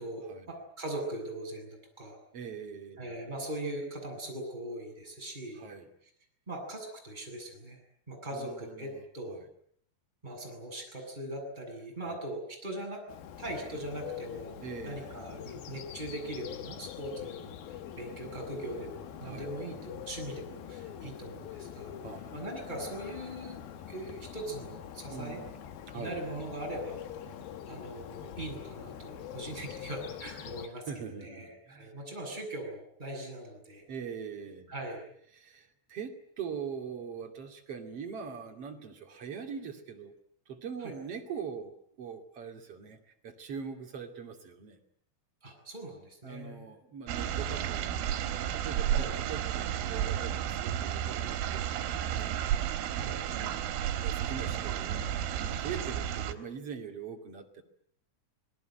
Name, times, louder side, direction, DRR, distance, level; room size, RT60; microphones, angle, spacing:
voice 1, 0.0-2.2 3.0-5.6 6.5-7.8 8.1-9.4 10.2-13.0 13.4-14.5 14.8-17.6 18.0-21.9 22.3-23.6 23.9-25.4 25.9-27.0 27.7-30.9 31.2-33.9 34.7-35.1 40.8-40.9 45.4-46.7 48.9-49.1 52.9-53.4 54.4-54.5, right 1 dB, 10° right, 1 dB, 7.6 m, -40 dB
voice 2, 2.3-3.2 5.6-5.9 8.3-9.4 12.0-12.2 14.6-15.1 19.2-19.5 22.0-22.3 25.1-26.2 30.9-31.9 33.9-34.7 35.3-40.1 40.5-44.8 46.2-48.2 48.5-52.3 53.3-57.6, right 6 dB, 40° right, 4 dB, 2.7 m, -42 dB
Bird, 13.1-30.7, left 9 dB, 65° left, 2.9 m, -44 dB
sound 1, 47.1-56.3, right 10 dB, 85° right, 4.1 m, -32 dB
26.5 x 20.5 x 9.1 m, 0.67 s
omnidirectional pair, 5.5 m